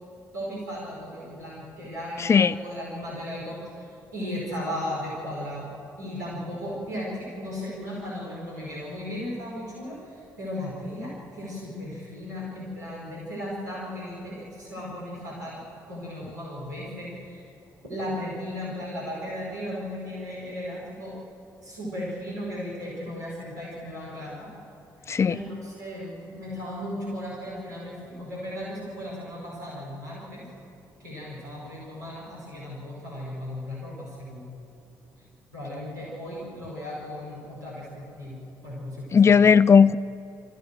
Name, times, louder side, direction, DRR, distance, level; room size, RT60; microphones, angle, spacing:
voice 1, 0.3-3.6 4.1-5.7 6.0-10.0 10.4-15.6 15.9-17.4 17.9-21.1 21.6-24.5 25.3-30.4 31.0-34.5 35.5-39.4, left 1 dB, 80° right, -6 dB, 4.9 m, -36 dB
voice 2, 2.2-2.5 25.1-25.4 39.1-40.0, left 6 dB, 30° left, 17 dB, 0.5 m, -16 dB
24.5 x 14.5 x 7.7 m, 2.6 s
figure-of-eight pair, 40°, 9 cm